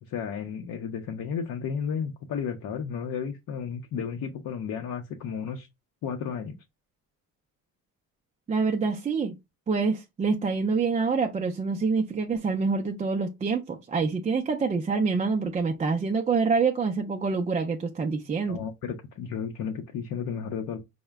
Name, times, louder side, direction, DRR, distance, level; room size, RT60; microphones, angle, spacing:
voice 1, 0.1-5.7 6.0-6.6 18.5-20.8, left 7 dB, 65° left, 0.6 m, -33 dB
voice 2, 8.5-9.3 9.7-18.6, right 4 dB, 20° right, 0.3 m, -26 dB
4.7 x 2.1 x 3.3 m
cardioid pair, 145°, 33 cm